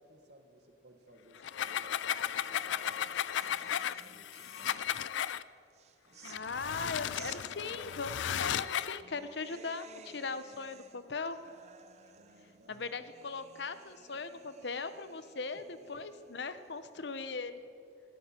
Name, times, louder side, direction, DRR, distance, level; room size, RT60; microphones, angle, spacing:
voice 1, 0.0-3.1 3.4-4.9 8.5-8.6 11.9-12.9 15.5-15.6, right 1 dB, 60° right, 5 dB, 1.6 m, -60 dB
sound 1, 1.4-5.4 6.2-9.0, left 10 dB, 85° left, 0.4 m, -35 dB
sound 2, 1.9-5.2 5.7-17.2, right 5 dB, 35° right, 0.6 m, -57 dB
voice 2, 6.2-11.4 12.7-17.6, left 4 dB, 70° left, 12 dB, 0.8 m, -39 dB
18.5 x 13.0 x 4.4 m, 2.7 s
head